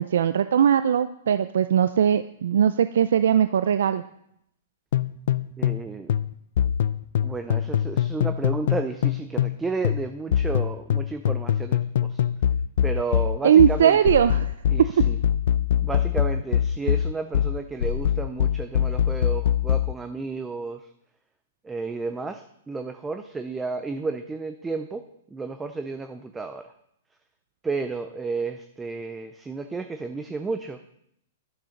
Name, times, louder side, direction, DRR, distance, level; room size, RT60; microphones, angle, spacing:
voice 1, 0.0-4.0 13.4-14.5, right 9 dB, 75° right, 12 dB, 0.4 m, -20 dB
sound 1, 4.9-9.6 9.8-19.9, left 10 dB, 55° left, 0.4 m, -23 dB
voice 2, 5.6-6.1 7.2-12.2 12.8-14.2 14.7-15.2 15.8-20.9 21.6-25.1 25.3-26.6 27.6-30.8, right 3 dB, 5° right, 8 dB, 0.4 m, -32 dB
11.0 x 6.5 x 5.8 m, 0.75 s
hypercardioid pair, 170°, 0 cm